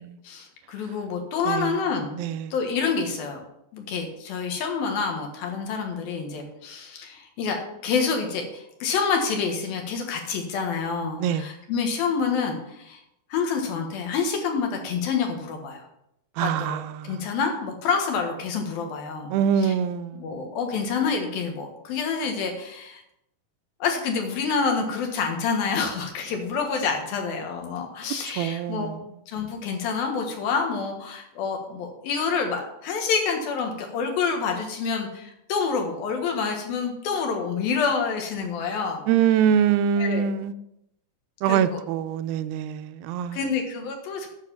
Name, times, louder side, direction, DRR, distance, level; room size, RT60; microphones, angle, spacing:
voice 1, 0.2-2.1 2.5-3.4 3.7-7.6 7.8-13.0 13.3-15.8 16.4-19.4 19.6-19.7 20.2-23.0 23.8-28.9 29.3-39.0 40.0-40.3 41.5-41.8 43.3-44.3, left 5 dB, 85° left, 3.4 m, -27 dB
voice 2, 1.5-1.8 2.1-2.5 11.2-11.5 16.4-17.2 19.3-20.5 28.4-29.0 39.1-40.5 41.4-43.4, right 8 dB, 85° right, 2.4 m, -24 dB
9.8 x 6.6 x 5.7 m
omnidirectional pair, 4.1 m